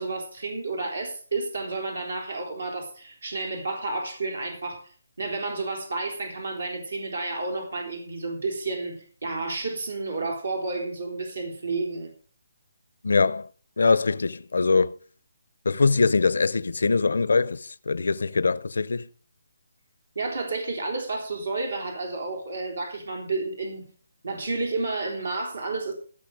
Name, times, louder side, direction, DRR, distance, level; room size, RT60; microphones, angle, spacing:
voice 1, 0.0-4.9 5.2-12.1 20.2-23.9 24.2-25.9, right 3 dB, 90° right, 3.9 m, -31 dB
voice 2, 13.0-13.5 13.8-14.9 15.7-19.1, left 4 dB, 80° left, 0.5 m, -22 dB
16.0 x 6.4 x 5.0 m
hypercardioid pair, 160°, 0 cm